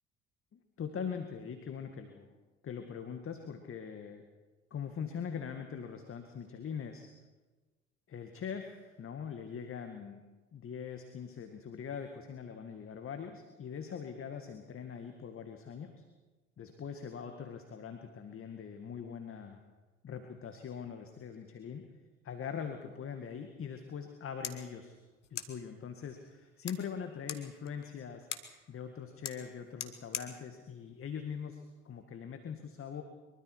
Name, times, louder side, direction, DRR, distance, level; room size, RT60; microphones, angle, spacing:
voice 1, 0.5-2.3 2.6-4.2 4.7-7.1 8.1-10.2 10.5-16.0 16.6-19.6 20.0-21.9 22.2-25.0 25.3-28.3 28.7-33.0, left 7 dB, 40° left, 6 dB, 2.0 m, -42 dB
sound 1, 24.0-32.0, left 8 dB, 85° left, 1.4 m, -47 dB
23.5 x 23.0 x 4.8 m, 1.2 s
hypercardioid pair, 60°, 35 cm